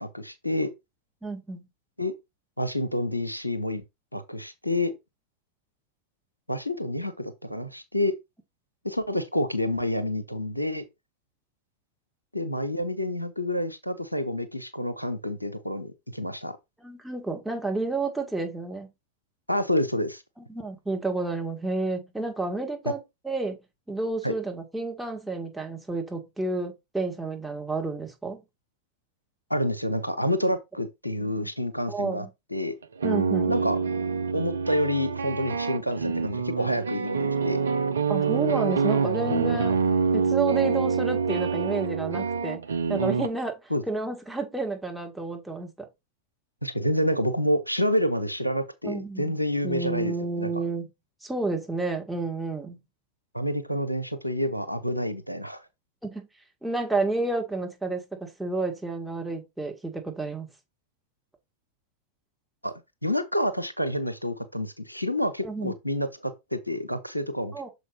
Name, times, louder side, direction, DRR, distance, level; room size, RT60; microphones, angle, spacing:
voice 1, 0.0-0.7 2.0-2.1 2.6-3.8 4.1-4.9 6.5-8.2 8.8-10.9 12.3-16.6 19.5-20.2 24.2-24.3 29.5-32.7 33.5-33.8 34.3-37.6 43.7-43.8 46.6-50.5 53.3-55.6 62.6-62.7 63.0-67.5, left 1 dB, 90° left, 0.8 m, -28 dB
voice 2, 1.2-1.6 16.8-18.9 20.4-23.6 23.9-28.4 31.9-32.3 33.0-33.6 38.1-39.8 40.1-42.6 42.9-43.6 43.9-45.9 48.8-49.3 49.6-50.9 51.2-52.8 56.0-56.3 56.6-60.5 65.4-65.7 67.5-67.7, right 3 dB, 5° right, 1.8 m, -30 dB
sound 1, 32.8-43.3, right 5 dB, 70° right, 0.5 m, -26 dB
6.6 x 4.9 x 3.4 m
figure-of-eight pair, 90°, 0 cm